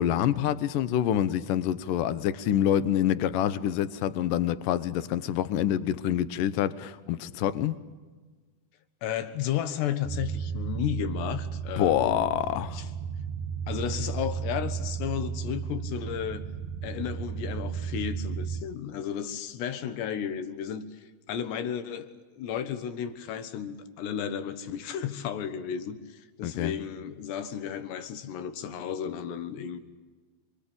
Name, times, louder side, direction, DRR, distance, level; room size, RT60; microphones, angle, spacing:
voice 1, 0.0-7.8 11.8-12.8 26.4-26.7, left 10 dB, 70° left, 2.2 m, -26 dB
voice 2, 9.0-12.3 12.7-12.9 13.7-16.4 16.8-20.8 21.3-29.8, left 9 dB, 85° left, 3.6 m, -33 dB
sound 1, 10.0-18.6, right 7 dB, 60° right, 2.5 m, -34 dB
27.0 x 22.5 x 8.8 m
omnidirectional pair, 4.8 m